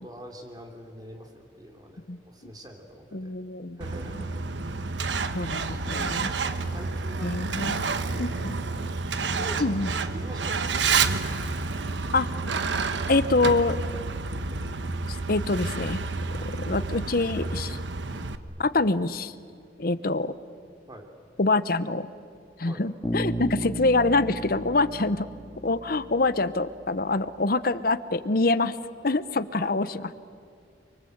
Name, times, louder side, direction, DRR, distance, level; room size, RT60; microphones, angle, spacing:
voice 1, 0.0-3.3 3.8-4.4 6.2-8.8 9.2-9.8 10.1-11.2 16.3-16.5 20.9-21.1 22.6-22.8 29.6-29.7, equal, 20° right, 3 dB, 3.2 m, -44 dB
voice 2, 3.1-3.8 5.3-6.3 7.2-7.8 8.2-8.6 9.6-9.9 12.1-12.6 13.1-13.8 15.1-16.0 16.7-17.8 18.6-19.3 19.8-20.3 21.4-22.1 22.6-25.3 25.6-28.8 29.0-30.1, left 3 dB, 55° left, 14 dB, 0.9 m, -25 dB
Truck, 3.8-18.4, right 4 dB, 90° right, 1.1 m, -29 dB
Bass guitar, 23.0-26.9, right 1 dB, 10° left, 3.1 m, -34 dB
29.5 x 23.5 x 8.0 m, 2.3 s
head